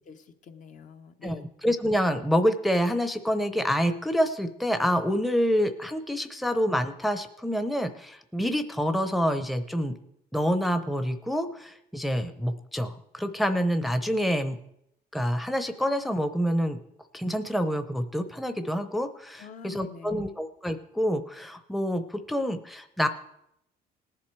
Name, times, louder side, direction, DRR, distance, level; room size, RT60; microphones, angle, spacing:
voice 1, 0.1-1.5 19.4-20.3, left 6 dB, 50° left, 7 dB, 1.0 m, -46 dB
voice 2, 1.2-9.9 10.3-14.6 15.1-16.8 17.1-23.1, equal, ahead, 9 dB, 0.7 m, -27 dB
19.0 x 7.5 x 4.7 m, 0.77 s
cardioid pair, 110°, 17 cm